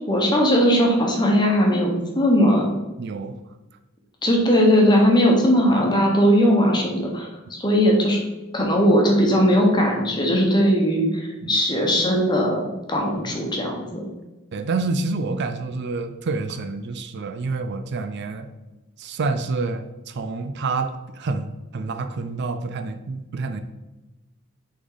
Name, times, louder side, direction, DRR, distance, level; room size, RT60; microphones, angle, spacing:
voice 1, 0.1-2.7 4.2-8.2 8.5-14.0, equal, 20° left, 0 dB, 1.2 m, -19 dB
voice 2, 3.0-3.4 11.4-11.6 14.5-18.5 19.0-23.6, right 3 dB, 55° right, 8 dB, 0.4 m, -28 dB
6.0 x 4.0 x 4.0 m, 1.1 s
head